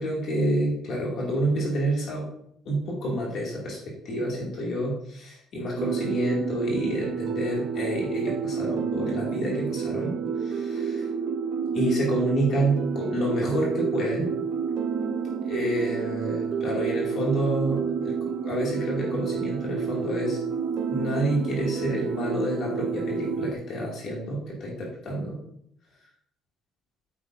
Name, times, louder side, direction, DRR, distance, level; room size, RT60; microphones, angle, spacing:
voice 1, 0.0-2.3 2.7-3.8 4.0-10.1 10.4-11.1 11.7-14.3 15.4-20.4 20.9-25.4, right 1 dB, 45° left, -3 dB, 2.2 m, -28 dB
sound 1, 5.8-23.6, right 6 dB, 55° right, 0.7 m, -29 dB
9.3 x 8.5 x 2.6 m, 0.71 s
cardioid pair, 170°, 0 cm